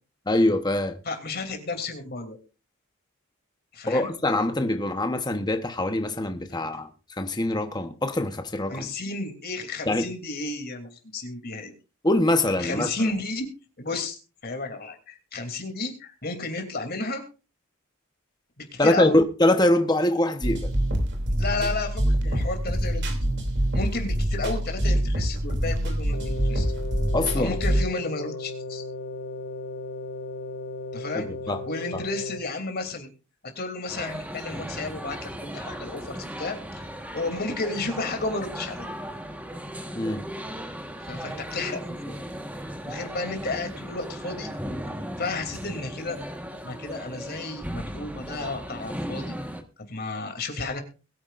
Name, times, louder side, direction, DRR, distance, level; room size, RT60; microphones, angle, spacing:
voice 1, 0.3-1.0 3.9-6.9 7.2-8.9 9.9-10.1 12.0-12.9 18.8-20.7 27.1-27.5 31.1-31.6 31.9-32.0 39.9-40.2, left 1 dB, 20° left, 1.0 m, -23 dB
voice 2, 1.0-2.4 3.7-4.1 6.5-6.8 8.7-11.7 12.6-13.5 13.8-17.2 18.6-19.2 21.4-23.2 23.7-26.7 27.3-28.8 30.9-31.3 31.7-33.1 33.5-36.9 37.1-38.9 41.0-42.2 42.8-44.5 45.2-46.2 46.6-49.3 49.9-50.8, left 3 dB, 45° left, 3.0 m, -32 dB
sound 1, 20.4-27.8, equal, 55° right, 2.9 m, -25 dB
sound 2, 26.1-32.4, left 3 dB, 85° left, 1.7 m, -36 dB
sound 3, 33.9-49.6, equal, 5° right, 1.3 m, -36 dB
22.0 x 9.7 x 2.5 m
head